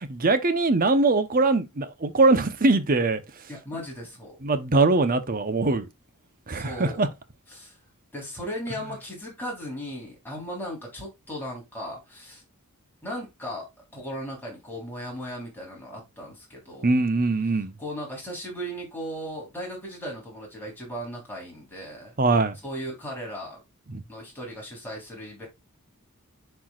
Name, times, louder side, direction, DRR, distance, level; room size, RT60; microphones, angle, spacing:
voice 1, 0.1-3.2 4.4-5.9 6.5-7.1 16.8-17.7 22.2-22.6 23.9-24.0, right 3 dB, 40° right, 0.9 m, -22 dB
voice 2, 3.5-4.4 6.5-7.1 7.5-7.8 8.1-12.4 13.0-13.7 13.9-16.9 17.8-22.1 22.6-23.6 24.1-25.5, equal, 10° left, 3.7 m, -37 dB
10.0 x 4.7 x 2.4 m
head